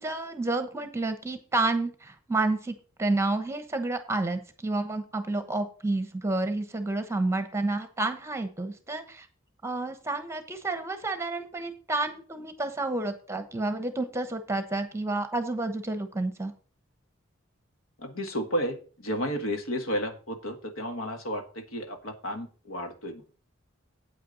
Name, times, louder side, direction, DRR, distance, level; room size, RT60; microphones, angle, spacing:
voice 1, 0.0-9.3 9.6-16.5, right 2 dB, 15° right, 8 dB, 1.0 m, -30 dB
voice 2, 18.0-23.2, equal, 80° left, 6 dB, 1.5 m, -32 dB
8.6 x 8.6 x 4.0 m, 0.38 s
head